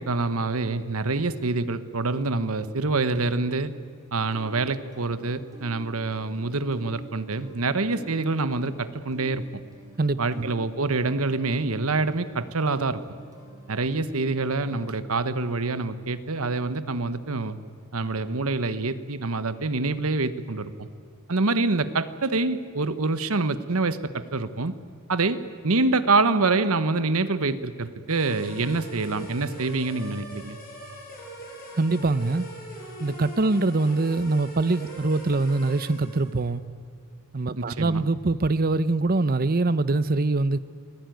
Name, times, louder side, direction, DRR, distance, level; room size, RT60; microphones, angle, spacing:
voice 1, 0.0-3.7 4.1-9.4 10.2-13.0 13.7-17.6 17.9-20.9 21.3-24.7 25.1-25.4 25.6-30.6 37.6-38.0, right 3 dB, 70° right, 1.2 m, -26 dB
sound 1, 4.2-14.9, right 1 dB, 15° right, 4.6 m, -48 dB
voice 2, 10.0-10.5 31.8-32.4 33.0-36.6 37.3-40.6, right 2 dB, 40° right, 0.7 m, -23 dB
sound 2, 28.1-36.4, right 1 dB, 40° left, 6.9 m, -41 dB
28.0 x 19.0 x 9.3 m
head